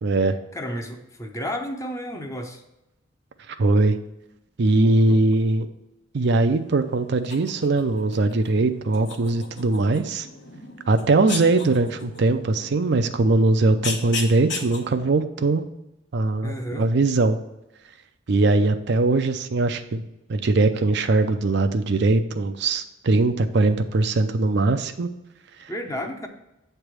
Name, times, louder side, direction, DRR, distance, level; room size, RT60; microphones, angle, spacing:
voice 1, 0.0-0.3 3.5-4.0 4.6-5.7 6.1-10.3 10.9-15.6 16.1-17.4 18.3-20.0 20.3-25.1, right 2 dB, 60° right, 9 dB, 0.5 m, -21 dB
voice 2, 0.5-2.6 4.8-5.2 16.4-16.9 25.7-26.3, equal, 15° left, 4 dB, 0.7 m, -32 dB
sound 1, 6.5-14.8, left 4 dB, 65° left, 1.0 m, -37 dB
8.1 x 3.4 x 6.1 m, 0.91 s
head